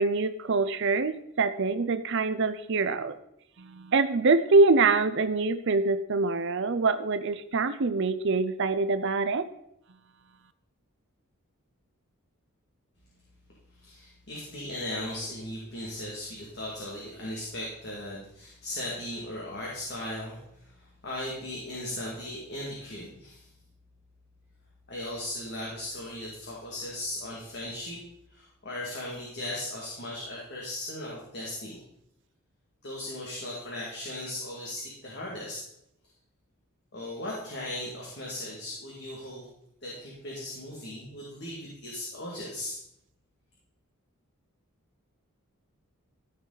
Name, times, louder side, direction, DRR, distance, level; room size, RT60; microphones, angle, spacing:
voice 1, 0.0-3.2 3.6-9.5, right 3 dB, 55° right, 11 dB, 0.6 m, -25 dB
voice 2, 13.8-23.5 24.9-28.0 28.3-31.8 32.8-35.6 36.9-39.5 39.8-42.8, left 1 dB, 50° left, -4 dB, 2.3 m, -37 dB
14.0 x 6.8 x 4.0 m, 0.77 s
head